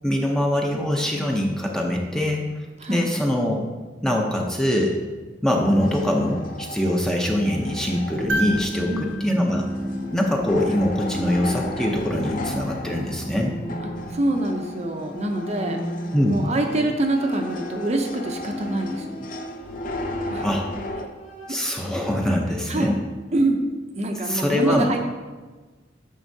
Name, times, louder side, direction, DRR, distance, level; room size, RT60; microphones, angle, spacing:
voice 1, 0.0-2.5 2.9-3.7 4.0-5.0 5.4-9.7 10.1-13.6 16.1-16.4 20.4-20.7 21.5-23.0 24.2-24.9, left 1 dB, 5° left, 0 dB, 0.6 m, -23 dB
sound 1, 5.7-21.1, left 2 dB, 45° left, 0.5 m, -36 dB
sound 2, 8.3-10.6 12.6-12.7, right 1 dB, 85° right, 0.7 m, -32 dB
Bowed string instrument, 8.9-20.6 21.0-21.8, equal, 80° left, 2.3 m, -36 dB
voice 2, 8.9-9.2 14.1-15.8 16.3-19.3 20.3-20.5 22.7-23.0 23.3-23.6 23.9-25.0, right 2 dB, 35° right, 3 dB, 0.6 m, -25 dB
9.4 x 5.4 x 2.7 m, 1.3 s
head